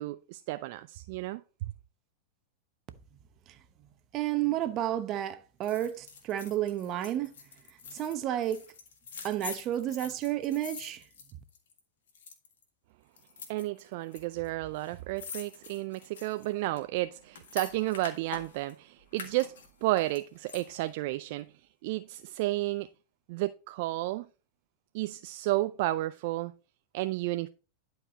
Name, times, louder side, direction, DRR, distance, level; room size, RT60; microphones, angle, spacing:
voice 1, 0.0-1.4 13.5-19.6 19.8-21.5 21.8-22.9 23.3-24.3 24.9-26.5 26.9-27.5, right 18 dB, 60° right, 0.4 m, -32 dB
voice 2, 4.1-7.3 7.9-8.6 9.2-11.0, right 12 dB, 40° right, 1.0 m, -31 dB
sound 1, 5.6-11.8 12.1-12.6 13.2-14.2 14.5-14.6 14.8-18.7 19.1-20.9 21.3-21.4, left 6 dB, 80° left, 1.8 m, -45 dB
11.0 x 4.8 x 4.0 m
hypercardioid pair, 105°, 0 cm